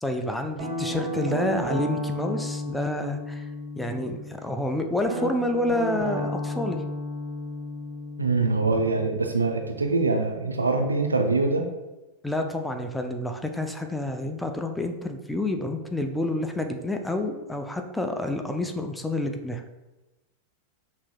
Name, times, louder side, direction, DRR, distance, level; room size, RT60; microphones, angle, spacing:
voice 1, 0.0-3.5 3.8-6.8 12.2-19.6, left 1 dB, 5° left, 5 dB, 0.4 m, -29 dB
Guitar, 0.6-4.4 5.0-9.8, left 1 dB, 35° right, 1.2 m, -33 dB
voice 2, 8.2-11.7, right 3 dB, 80° right, 4 dB, 0.4 m, -24 dB
5.7 x 2.8 x 2.2 m, 1.1 s
figure-of-eight pair, 90°, 0 cm